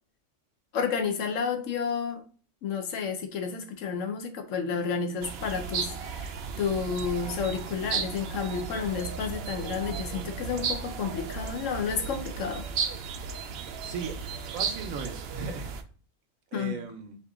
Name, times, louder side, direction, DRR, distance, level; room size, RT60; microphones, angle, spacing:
voice 1, 0.7-2.2 2.6-12.6 16.5-16.8, left 6 dB, 70° left, 6 dB, 1.1 m, -31 dB
sound 1, 5.2-15.8, right 6 dB, 65° right, 0.7 m, -35 dB
voice 2, 13.8-14.1 14.5-15.7 16.5-17.2, right 5 dB, 85° right, 6 dB, 1.2 m, -37 dB
4.7 x 2.9 x 3.6 m, 0.40 s
omnidirectional pair, 1.4 m